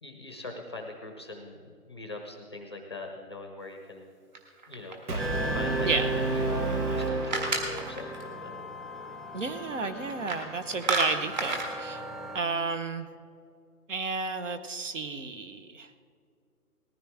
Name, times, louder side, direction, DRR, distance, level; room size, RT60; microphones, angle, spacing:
voice 1, 0.0-4.1 4.7-8.6, left 2 dB, 15° left, 3 dB, 0.7 m, -42 dB
sound 1, 4.3-5.3 6.7-8.3 10.1-10.4 10.7-11.7, right 4 dB, 30° right, 1.7 m, -32 dB
Brass instrument, 5.1-8.2, right 3 dB, 75° right, 1.6 m, -30 dB
sound 2, 5.2-12.4, equal, ahead, 0.3 m, -39 dB
voice 2, 9.3-12.0 12.3-13.1 13.9-15.9, right 4 dB, 50° right, 10 dB, 1.1 m, -32 dB
19.5 x 14.5 x 3.5 m, 2.3 s
hypercardioid pair, 165°, 46 cm